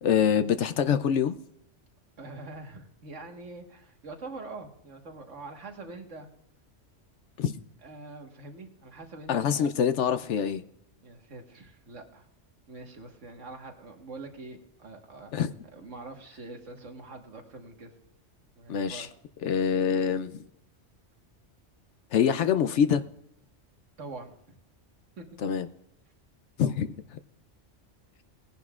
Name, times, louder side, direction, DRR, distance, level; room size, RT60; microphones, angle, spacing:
voice 1, 0.0-1.4 7.4-7.5 9.3-10.6 15.3-15.5 18.7-19.1 19.4-20.3 22.1-23.0 25.4-25.7 26.6-26.9, left 8 dB, 75° left, 11 dB, 0.9 m, -25 dB
voice 2, 2.2-6.3 7.8-9.7 11.0-12.3 12.7-15.3 15.7-17.9 18.5-19.1 24.0-24.5 25.2-25.3 26.6-26.8, right 3 dB, 85° right, 3 dB, 1.8 m, -44 dB
19.0 x 10.5 x 2.4 m, 0.74 s
omnidirectional pair, 1.2 m